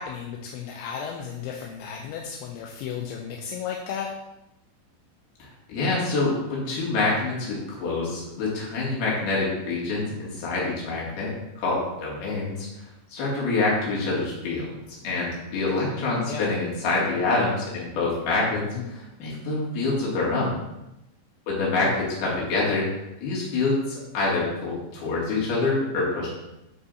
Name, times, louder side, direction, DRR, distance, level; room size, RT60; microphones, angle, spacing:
voice 1, 0.0-4.1 15.8-16.6 18.8-18.9 21.7-22.0, left 7 dB, 80° left, 0 dB, 2.8 m, -34 dB
voice 2, 5.4-12.8 13.1-14.8 15.0-20.6 21.5-22.9 23.2-26.3, left 3 dB, 55° left, -6 dB, 3.9 m, -26 dB
12.5 x 5.5 x 2.7 m, 0.93 s
omnidirectional pair, 5.7 m